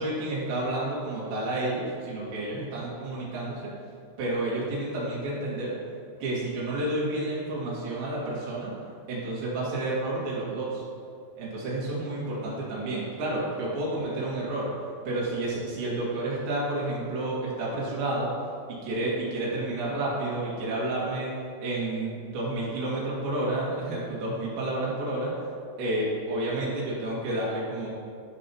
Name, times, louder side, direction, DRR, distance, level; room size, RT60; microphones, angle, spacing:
voice 1, 0.0-3.7 4.2-5.7 6.2-8.7 9.1-10.8 11.4-14.7 15.1-18.3 18.7-21.3 21.6-25.3 25.8-27.9, right 2 dB, 85° right, -6 dB, 4.5 m, -30 dB
15.5 x 5.6 x 3.0 m, 2.4 s
omnidirectional pair, 5.0 m